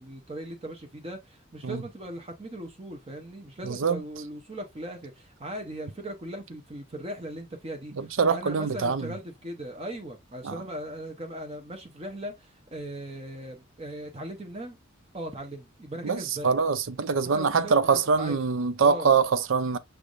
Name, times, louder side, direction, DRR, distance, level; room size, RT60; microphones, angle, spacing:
voice 1, 0.0-14.8 15.1-16.6 17.3-18.5 18.8-19.1, right 1 dB, 30° right, 0.7 m, -39 dB
voice 2, 3.7-4.0 8.0-9.0 10.4-10.5 16.0-16.2 16.4-19.8, right 5 dB, 70° right, 0.5 m, -24 dB
6.2 x 3.4 x 2.5 m
head